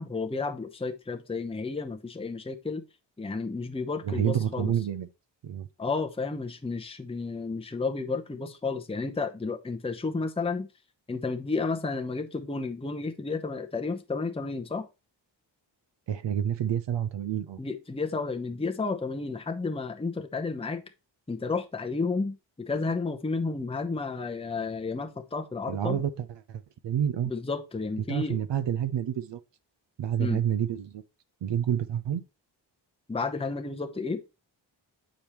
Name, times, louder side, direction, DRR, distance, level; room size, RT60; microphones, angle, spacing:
voice 1, 0.0-2.8 3.2-4.7 5.8-10.7 11.1-14.9 17.6-20.8 21.3-26.0 27.3-28.4 30.2-30.4 33.1-34.2, left 4 dB, 10° left, 0.8 m, -32 dB
voice 2, 4.0-5.1 5.4-5.7 16.1-17.6 25.7-27.3 28.1-29.4 30.0-31.0 31.4-32.2, right 9 dB, 65° right, 0.7 m, -29 dB
7.0 x 5.1 x 3.0 m
cardioid pair, 50°, 47 cm